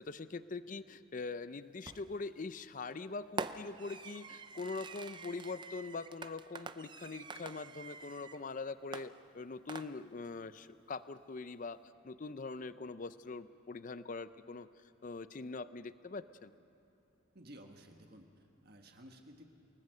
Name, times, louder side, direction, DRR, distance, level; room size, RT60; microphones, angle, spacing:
voice 1, 0.0-11.8 12.0-16.6, left 3 dB, 40° left, 14 dB, 0.5 m, -43 dB
Fireworks, 1.9-2.3 3.4-8.4 8.9-10.3, right 4 dB, 20° right, 0.5 m, -46 dB
voice 2, 17.3-19.5, equal, 50° right, 3 dB, 1.5 m, -55 dB
28.5 x 19.0 x 6.6 m, 3.0 s
head